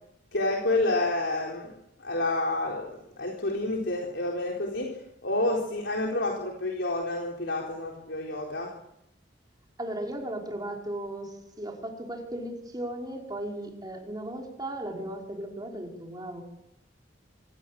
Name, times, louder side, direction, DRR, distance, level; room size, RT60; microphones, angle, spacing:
voice 1, 0.3-1.7 2.0-4.9 5.2-8.7, left 2 dB, 75° left, -1 dB, 4.1 m, -29 dB
voice 2, 9.8-16.4, right 1 dB, 20° right, 0 dB, 5.4 m, -36 dB
25.0 x 18.5 x 7.7 m, 0.80 s
head